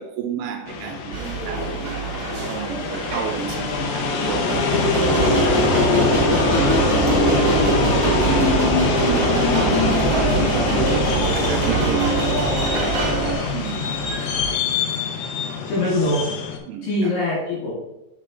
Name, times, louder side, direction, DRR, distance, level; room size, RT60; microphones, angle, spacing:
voice 1, 0.0-5.3 5.8-6.2 7.1-7.8 8.1-12.7 13.5-14.0 15.1-15.6 16.7-17.1, right 8 dB, 85° right, 4 dB, 3.0 m, -32 dB
sound 1, 0.7-16.6, left 6 dB, 75° left, 2.9 m, -24 dB
sound 2, 1.1-14.5, right 4 dB, 40° right, 2.1 m, -26 dB
sound 3, 5.0-13.3, right 2 dB, 20° right, 2.0 m, -23 dB
voice 2, 15.7-16.3 16.8-17.7, left 1 dB, 60° left, -5 dB, 2.7 m, -23 dB
7.3 x 5.7 x 3.6 m, 0.93 s
omnidirectional pair, 5.7 m